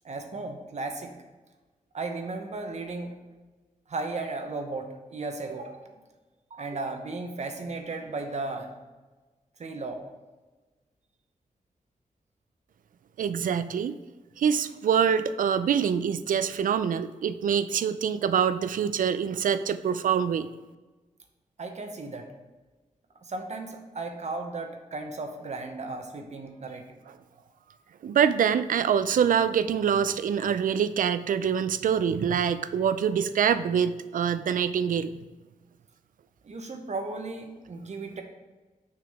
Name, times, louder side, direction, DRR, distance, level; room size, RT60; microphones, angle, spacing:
voice 1, 0.0-1.2 1.9-3.1 3.9-5.9 6.5-8.7 9.6-10.0 21.6-22.3 23.2-27.0 36.4-38.2, right 3 dB, 55° right, 4 dB, 0.8 m, -35 dB
voice 2, 13.2-13.9 14.4-20.5 28.0-35.1, right 7 dB, 75° right, 13 dB, 0.4 m, -25 dB
6.3 x 5.9 x 3.5 m, 1.2 s
wide cardioid pair, 90°, 14 cm